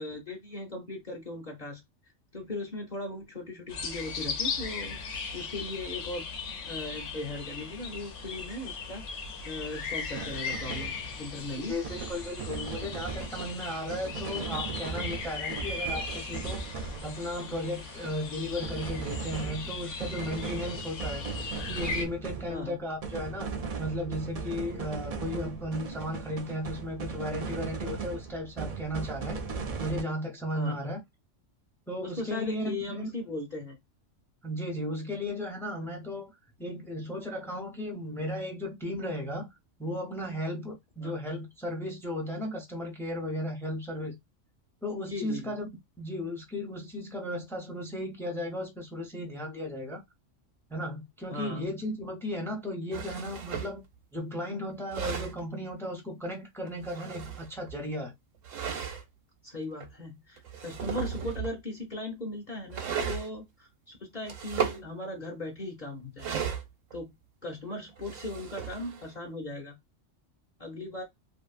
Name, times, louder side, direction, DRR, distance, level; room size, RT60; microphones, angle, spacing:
voice 1, 0.0-1.8 2.3-11.8 22.5-22.8 30.5-30.9 32.0-33.8 41.0-41.1 45.1-45.6 51.3-51.6 59.4-66.3 66.9-67.1 67.4-69.8 70.6-71.0, left 2 dB, 40° left, 0.8 m, -38 dB
sound 1, 3.7-22.1, left 5 dB, 80° left, 1.0 m, -38 dB
sound 2, 10.2-18.3 18.6-30.0, right 5 dB, 70° right, 0.3 m, -38 dB
voice 2, 11.7-16.7 17.0-23.5 23.8-29.4 29.8-31.0 31.9-33.1 34.4-36.3 36.6-39.5 39.8-44.1 44.8-45.7 46.0-50.0 50.7-53.8 54.1-58.1, left 1 dB, 5° left, 0.4 m, -35 dB
sound 3, 52.9-53.8 54.7-55.4 56.7-57.8 58.4-59.0 59.8-59.9 60.4-61.6 62.7-63.3 64.2-64.8 66.2-67.0 67.9-69.1, right 7 dB, 85° right, 1.0 m, -35 dB
2.7 x 2.5 x 2.4 m
omnidirectional pair, 1.3 m